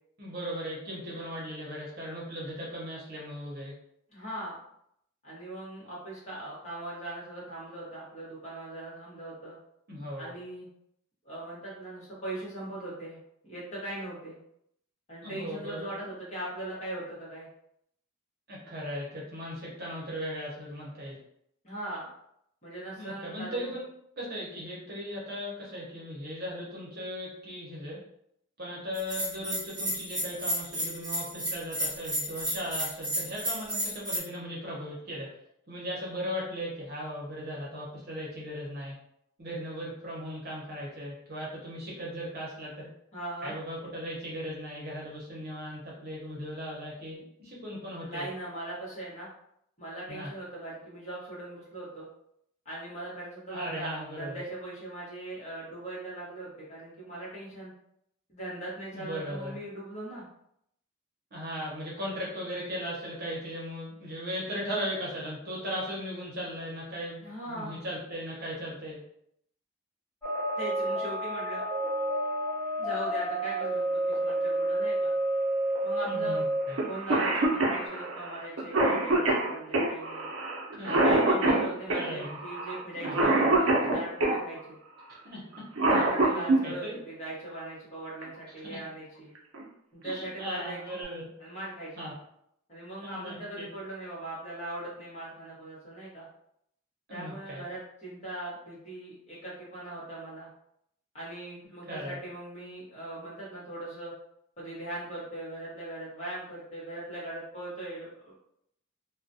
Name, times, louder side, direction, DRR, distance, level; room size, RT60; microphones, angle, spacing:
voice 1, 0.2-3.7 9.9-10.3 15.2-15.9 18.5-21.2 22.9-23.8 24.2-28.0 28.6-35.3 35.7-39.0 39.4-42.9 43.4-48.3 50.1-50.3 53.5-54.4 58.9-59.6 61.3-69.0 76.0-76.8 80.8-81.1 81.4-81.6 81.9-82.3 83.0-83.2 85.2-87.0 88.7-88.8 90.0-91.3 92.0-92.1 93.0-93.7 97.1-97.6 101.9-102.2, equal, 50° right, -5 dB, 0.8 m, -37 dB
voice 2, 4.1-4.6 5.2-9.6 10.2-10.7 11.2-13.2 13.4-14.4 15.1-17.5 21.6-22.1 22.6-23.7 43.1-43.6 48.0-49.3 49.8-52.1 52.6-57.7 58.3-60.2 67.2-67.8 70.5-71.6 72.8-75.1 75.8-76.4 76.9-80.3 80.8-84.8 85.9-89.3 89.9-91.0 91.4-91.9 92.7-96.3 97.1-100.5 101.1-104.1 104.6-108.3, right 1 dB, 35° left, -7 dB, 0.9 m, -40 dB
Bell, 28.9-34.2, equal, 20° right, 1.1 m, -32 dB
sound 1, 70.2-77.9, right 1 dB, 10° left, 0.6 m, -30 dB
Cough, 76.8-76.9 77.1-84.4 85.5-86.6 88.2-88.3 89.4-89.6 90.1-90.2 90.6-91.0, right 2 dB, 80° right, 0.5 m, -25 dB
2.3 x 2.1 x 2.6 m, 0.74 s
head